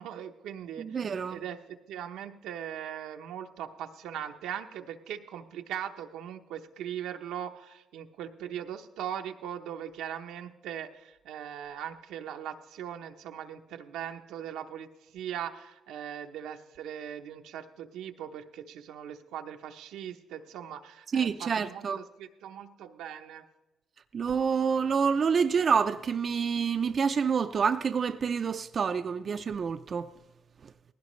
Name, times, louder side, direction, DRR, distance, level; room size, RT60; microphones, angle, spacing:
voice 1, 0.0-1.6 1.9-23.5, right 9 dB, 90° right, 0.8 m, -40 dB
voice 2, 0.8-1.4 21.1-22.0 24.1-30.1, right 6 dB, 45° right, 0.4 m, -27 dB
19.0 x 16.5 x 3.2 m
cardioid pair, 90°, 0 cm